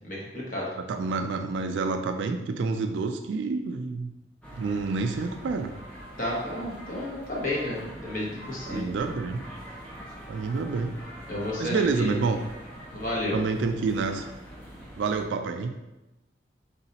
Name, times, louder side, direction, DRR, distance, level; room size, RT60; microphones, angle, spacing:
voice 1, 0.0-0.7 6.2-8.9 11.3-12.1 12.9-13.4, left 1 dB, 45° left, -5 dB, 1.0 m, -31 dB
voice 2, 0.8-4.1 4.5-5.7 8.7-9.4 10.3-11.0 11.6-12.4 13.3-14.3 15.0-15.8, right 4 dB, 90° right, 5 dB, 0.3 m, -28 dB
sound 1, 4.4-15.2, equal, 5° left, 0.6 m, -44 dB
4.0 x 3.8 x 2.8 m, 0.98 s
head